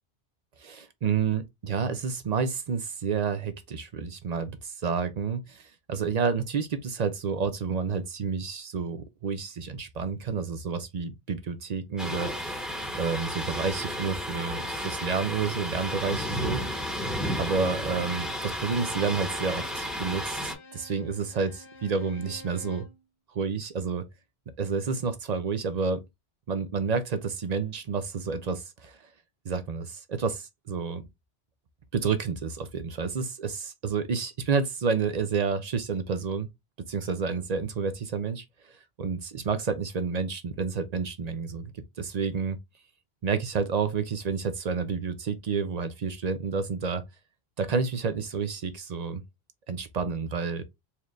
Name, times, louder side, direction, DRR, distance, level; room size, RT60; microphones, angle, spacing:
voice 1, 0.6-12.6 12.9-16.6 16.9-17.0 17.4-22.9 23.3-24.0 24.6-26.0 26.5-29.0 29.4-31.0 31.9-36.5 36.9-38.7 39.0-42.6 43.2-47.0 47.6-49.2 49.7-50.6, right 5 dB, 50° right, 0.5 m, -30 dB
Thunder, 12.0-20.5, equal, ahead, 1.1 m, -33 dB
Bowed string instrument, 16.2-23.0, left 2 dB, 65° left, 1.0 m, -50 dB
4.3 x 2.5 x 3.2 m
omnidirectional pair, 1.1 m